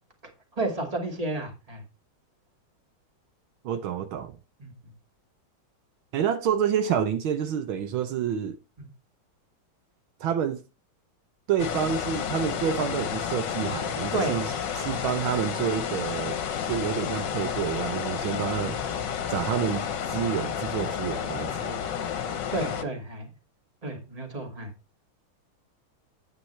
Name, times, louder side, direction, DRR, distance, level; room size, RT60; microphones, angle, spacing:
voice 1, 0.6-1.8 4.6-4.7 8.8-8.9 14.1-14.4 14.9-15.0 22.5-23.3 23.8-24.7, right 2 dB, 15° right, 2.2 m, -31 dB
voice 2, 3.6-4.3 6.1-8.6 10.2-10.6 11.5-16.4 16.7-18.8 19.3-21.8, right 8 dB, 75° right, 1.6 m, -28 dB
sound 1, 11.6-22.8, left 8 dB, 65° left, 1.5 m, -31 dB
9.6 x 8.9 x 3.2 m
omnidirectional pair, 2.3 m